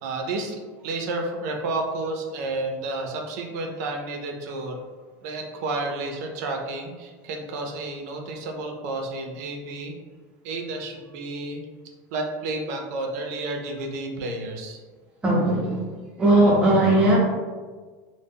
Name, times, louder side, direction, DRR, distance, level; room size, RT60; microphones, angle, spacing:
voice 1, 0.0-4.8 5.2-9.9 10.4-11.6 12.1-14.8 15.6-15.9, right 2 dB, 75° right, 3 dB, 0.4 m, -31 dB
voice 2, 15.2-15.8 16.2-17.2, right 1 dB, 10° right, -4 dB, 0.4 m, -18 dB
2.0 x 2.0 x 3.4 m, 1.4 s
cardioid pair, 165°, 9 cm